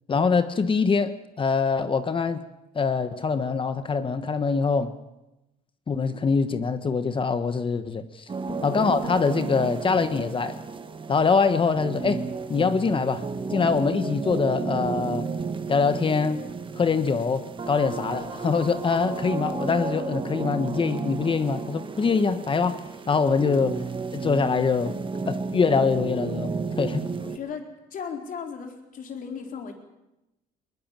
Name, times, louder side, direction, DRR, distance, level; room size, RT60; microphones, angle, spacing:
voice 1, 0.1-2.4 2.7-4.9 5.9-8.3 8.6-10.6 11.1-12.2 12.5-15.3 15.7-16.4 16.7-23.8 24.1-25.0 25.2-27.1, left 5 dB, 30° left, 10 dB, 1.3 m, -24 dB
sound 1, 8.3-27.4, right 4 dB, 30° right, 1.6 m, -33 dB
voice 2, 27.2-29.7, left 6 dB, 55° left, 3 dB, 4.2 m, -36 dB
21.0 x 20.5 x 7.6 m, 0.96 s
cardioid pair, 110°, 17 cm